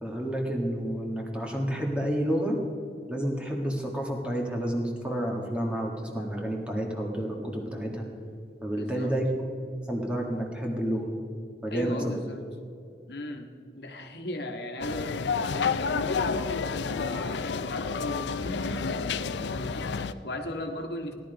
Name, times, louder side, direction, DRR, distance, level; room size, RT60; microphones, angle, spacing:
voice 1, 0.0-2.6 3.1-8.1 8.6-9.3 9.9-11.1 11.6-12.2, equal, 5° right, 0 dB, 1.6 m, -30 dB
voice 2, 8.7-9.2 11.7-12.4 13.1-21.1, left 1 dB, 70° left, 4 dB, 1.4 m, -37 dB
sound 1, 14.8-20.1, left 5 dB, 90° left, 0.5 m, -30 dB
17.0 x 11.5 x 5.2 m, 2.5 s
head